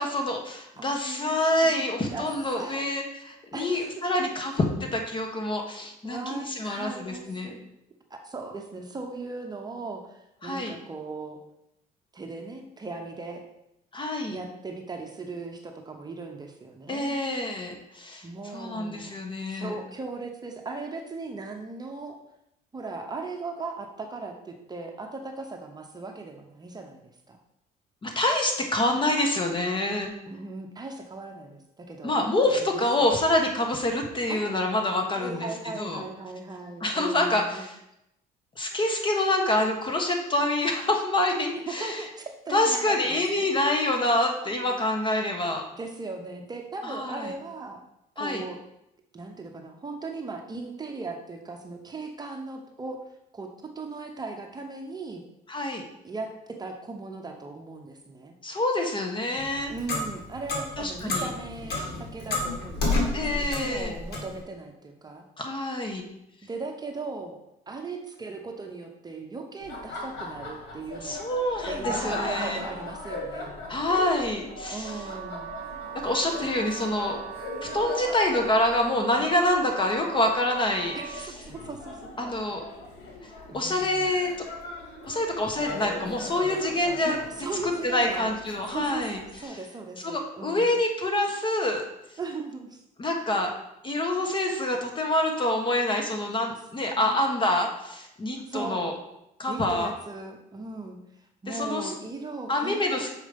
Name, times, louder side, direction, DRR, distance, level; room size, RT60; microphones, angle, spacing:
voice 1, 0.0-7.5 10.4-10.7 13.9-14.4 16.9-18.3 18.5-19.7 28.0-30.1 32.0-36.0 36.8-37.8 38.6-42.0 42.5-45.6 46.8-47.3 48.2-48.4 55.5-55.8 58.4-59.7 60.8-61.3 63.1-63.9 65.4-66.0 71.0-72.6 73.7-74.9 75.9-77.2 77.6-80.9 82.2-82.6 83.5-84.3 85.0-87.2 87.8-89.2 89.5-89.6 90.0-91.8 93.0-93.5 93.8-98.9 99.4-99.9 101.5-101.9 102.5-103.1, left 1 dB, 30° left, 3 dB, 1.4 m, -26 dB
voice 2, 0.8-2.9 3.5-3.9 6.0-7.6 8.1-11.4 12.1-13.4 14.3-17.4 18.2-19.1 19.5-22.2 22.7-27.0 27.3-27.4 30.3-32.2 32.6-32.8 33.1-33.2 34.3-34.6 35.1-37.6 41.5-43.5 45.7-47.8 48.2-48.6 49.1-53.0 53.3-55.2 56.0-58.3 59.7-65.2 66.4-67.4 67.7-71.2 71.7-73.5 74.7-75.5 76.4-76.5 80.9-82.3 83.5-84.1 87.0-88.3 88.7-90.8 92.2-92.8 96.8-97.2 97.6-97.7 98.5-98.9 99.5-103.1, right 3 dB, 25° right, 3 dB, 0.9 m, -38 dB
Clock, 59.4-64.4, left 2 dB, 75° left, 2.2 m, -30 dB
Laughter, 69.6-89.5, left 2 dB, 90° left, 2.1 m, -39 dB
Wind instrument woodwind instrument, 74.8-81.3, right 11 dB, 65° right, 0.8 m, -40 dB
6.5 x 5.0 x 5.2 m, 0.83 s
cardioid pair, 110°, 17 cm